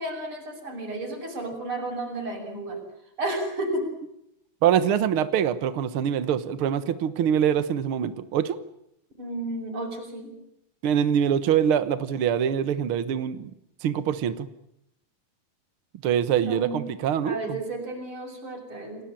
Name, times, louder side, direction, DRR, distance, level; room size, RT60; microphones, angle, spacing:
voice 1, 0.0-2.8 3.2-3.9 9.2-10.3 16.4-16.9 17.2-19.0, right 2 dB, 35° right, 2 dB, 7.4 m, -32 dB
voice 2, 4.6-8.6 10.8-13.5 13.8-14.5 16.0-17.6, right 9 dB, 80° right, 13 dB, 1.2 m, -24 dB
29.0 x 19.0 x 9.0 m, 0.80 s
omnidirectional pair, 4.3 m